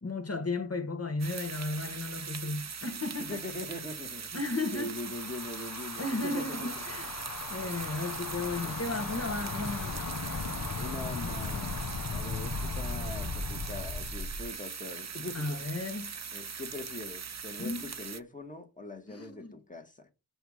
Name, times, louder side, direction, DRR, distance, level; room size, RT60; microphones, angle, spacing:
voice 1, 0.0-3.4 4.3-5.0 6.0-7.1 7.5-10.0 15.3-16.1 17.6-17.9 19.1-19.6, left 2 dB, 40° left, 1.3 m, -34 dB
sound 1, 1.2-18.2, right 6 dB, 45° right, 0.7 m, -41 dB
voice 2, 3.3-4.3 4.7-6.8 8.5-8.8 10.8-11.7 12.1-15.6 16.3-20.1, left 2 dB, 20° left, 1.5 m, -42 dB
sound 2, 4.7-14.5, left 4 dB, 55° left, 0.9 m, -37 dB
7.9 x 2.7 x 4.9 m
cardioid pair, 45°, 38 cm